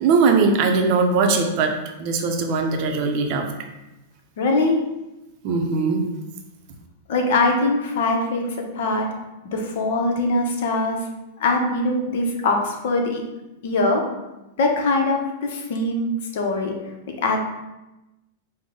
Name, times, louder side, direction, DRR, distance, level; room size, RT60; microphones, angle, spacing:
voice 1, 0.0-3.5 5.4-6.0, right 4 dB, 45° right, 4 dB, 0.6 m, -20 dB
voice 2, 4.4-4.8 7.1-9.0 9.4-11.0 11.4-13.2 13.6-14.0 14.6-16.7 17.2-17.4, left 2 dB, 70° left, 2 dB, 0.8 m, -22 dB
5.1 x 2.1 x 3.8 m, 1.0 s
supercardioid pair, 145°, 0 cm